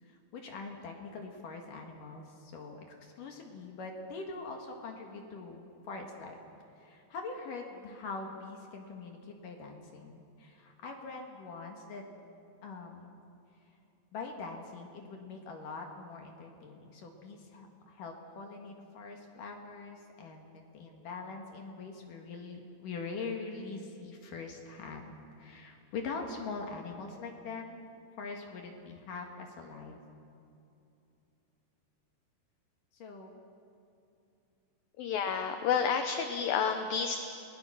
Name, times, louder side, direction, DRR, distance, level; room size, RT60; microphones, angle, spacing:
voice 1, 0.0-6.4 6.7-12.0 12.6-13.2 14.1-27.8 28.2-30.0 32.9-33.4, left 4 dB, 55° left, 2 dB, 2.9 m, -43 dB
voice 2, 35.0-37.2, left 7 dB, 75° left, 6 dB, 2.2 m, -30 dB
30.0 x 20.5 x 6.2 m, 2.7 s
omnidirectional pair, 5.1 m